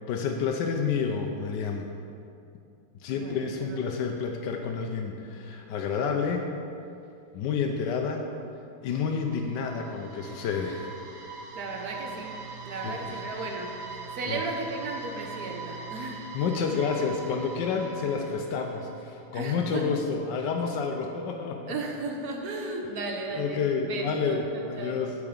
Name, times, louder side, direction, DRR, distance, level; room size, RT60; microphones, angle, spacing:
voice 1, 0.1-1.9 3.0-6.5 7.3-8.3 8.8-11.0 12.8-13.2 14.3-14.4 16.0-21.7 23.3-25.1, left 5 dB, 70° left, 2 dB, 1.1 m, -29 dB
voice 2, 3.1-4.0 11.5-12.3 12.6-13.7 14.1-16.2 19.3-19.9 21.7-23.6 23.9-25.0, right 3 dB, 55° right, 1 dB, 1.2 m, -35 dB
sound 1, 8.9-19.0, right 3 dB, 75° right, 1.8 m, -41 dB
8.6 x 4.8 x 7.1 m, 2.6 s
omnidirectional pair, 2.3 m